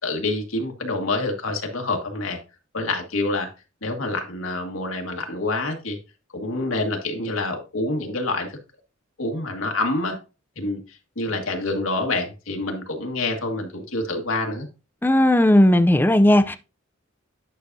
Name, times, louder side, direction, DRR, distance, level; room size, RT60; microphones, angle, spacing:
voice 1, 0.0-2.4 2.7-3.5 3.8-6.0 6.3-8.6 9.2-10.2 10.5-10.8 11.1-14.7, left 2 dB, 80° left, 1.8 m, -27 dB
voice 2, 15.0-16.6, left 1 dB, 10° left, 0.5 m, -16 dB
10.0 x 5.9 x 2.7 m
head